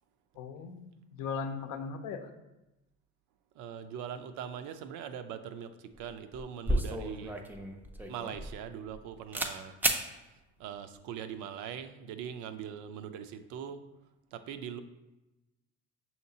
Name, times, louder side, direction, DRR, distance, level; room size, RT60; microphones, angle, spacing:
voice 1, 0.4-2.3, left 5 dB, 70° left, 7 dB, 0.6 m, -38 dB
voice 2, 3.6-7.4 8.1-9.8 10.6-13.8 14.3-14.8, right 8 dB, 70° right, 10 dB, 0.5 m, -41 dB
sound 1, 5.9-6.1 6.3-9.0 9.3-9.5 9.8-10.0, right 1 dB, 5° right, 0.4 m, -32 dB
5.6 x 2.8 x 2.7 m, 0.99 s
supercardioid pair, 80°, 32 cm